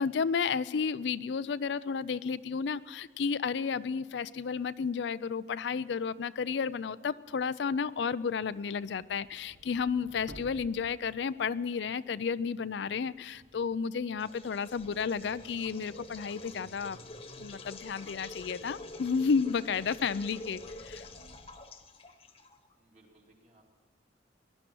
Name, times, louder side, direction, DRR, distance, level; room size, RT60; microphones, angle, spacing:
voice 1, 0.0-17.0 17.4-21.1, left 5 dB, 70° left, 16 dB, 0.4 m, -32 dB
sound 1, 8.4-12.0 12.3-21.5, equal, 80° right, 1.6 m, -56 dB
sound 2, 14.2-22.7, left 2 dB, 30° left, 1.2 m, -47 dB
voice 2, 22.7-23.6, right 2 dB, 40° right, -1 dB, 2.8 m, -62 dB
18.5 x 12.0 x 6.2 m, 1.5 s
head